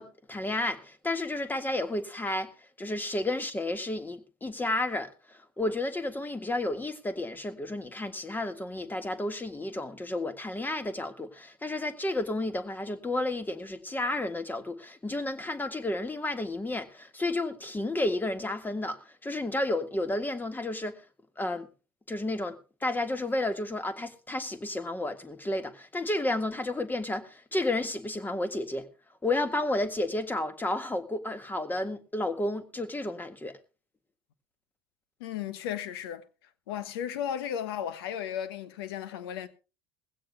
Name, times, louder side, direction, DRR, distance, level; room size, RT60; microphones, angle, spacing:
voice 1, 0.0-2.5 2.8-21.0 21.4-21.7 22.1-28.9 29.2-33.6, left 2 dB, 15° left, 1.7 m, -32 dB
voice 2, 35.2-36.3 36.7-39.5, left 9 dB, 75° left, 1.3 m, -35 dB
20.5 x 16.0 x 2.3 m
hypercardioid pair, 75°, 13 cm